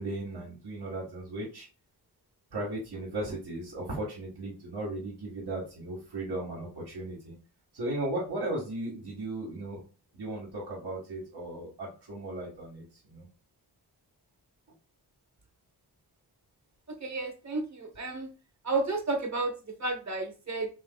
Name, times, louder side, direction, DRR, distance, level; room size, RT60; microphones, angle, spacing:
voice 1, 0.0-1.7 2.5-7.4 7.7-9.8 10.1-13.3, right 1 dB, 70° right, -5 dB, 1.8 m, -36 dB
voice 2, 17.0-18.3 18.6-20.7, right 3 dB, 40° right, 4 dB, 1.1 m, -32 dB
5.6 x 4.0 x 2.3 m, 0.34 s
wide cardioid pair, 170°, 41 cm